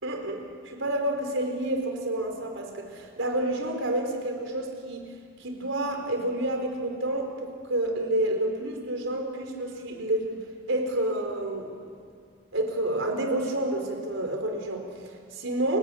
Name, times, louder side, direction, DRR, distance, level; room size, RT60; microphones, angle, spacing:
voice 1, 0.0-5.0 5.4-10.4 10.7-11.7 12.5-15.8, right 1 dB, 85° right, 3 dB, 4.5 m, -29 dB
29.5 x 19.0 x 8.8 m, 2.3 s
head